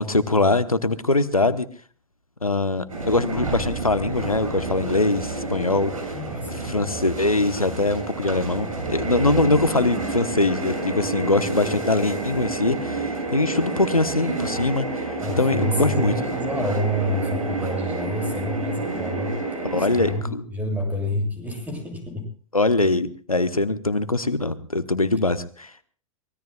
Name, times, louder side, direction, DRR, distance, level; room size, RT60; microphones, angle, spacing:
voice 1, 0.0-1.7 2.4-5.9 6.5-16.1 19.6-20.4 22.5-25.8, left 2 dB, 90° left, 13 dB, 1.0 m, -22 dB
sound 1, 2.9-20.1, right 3 dB, 80° right, 7.2 m, -29 dB
voice 2, 6.1-6.7 9.3-9.4 15.2-19.3 19.8-22.3, left 1 dB, 10° right, 3 dB, 7.7 m, -28 dB
24.0 x 20.0 x 2.3 m, 0.43 s
figure-of-eight pair, 100°, 18 cm